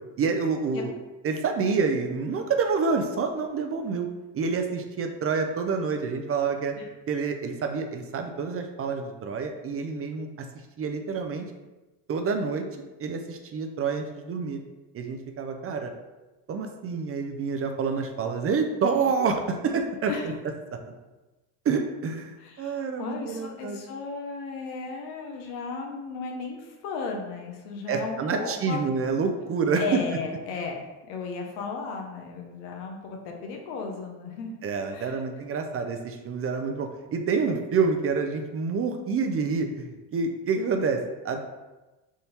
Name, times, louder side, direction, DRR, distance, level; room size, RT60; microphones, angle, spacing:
voice 1, 0.2-0.9 1.2-4.1 4.3-6.7 7.1-10.5 10.8-11.4 12.1-12.6 13.0-14.6 14.9-15.9 16.5-20.3 20.8-20.9 21.7-23.8 27.9-29.8 34.6-41.4, right 5 dB, 30° right, 5 dB, 0.4 m, -28 dB
voice 2, 22.4-28.8 29.7-34.5 34.9-35.2, left 4 dB, 90° left, 2 dB, 0.9 m, -35 dB
3.6 x 2.7 x 4.3 m, 1.1 s
supercardioid pair, 95°, 45 cm